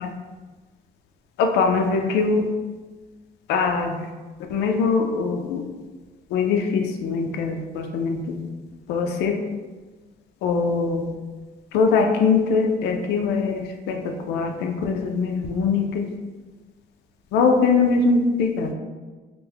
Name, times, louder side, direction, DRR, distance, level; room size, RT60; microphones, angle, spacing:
voice 1, 1.6-2.4 3.5-3.9 4.5-5.0 6.3-6.8 7.1-7.3 7.9-8.2 8.9-9.3 10.4-11.0 11.7-13.4 14.3-15.8 17.3-18.7, left 4 dB, 80° left, 4 dB, 0.4 m, -21 dB
3.3 x 2.1 x 3.3 m, 1.3 s
cardioid pair, 110°, 17 cm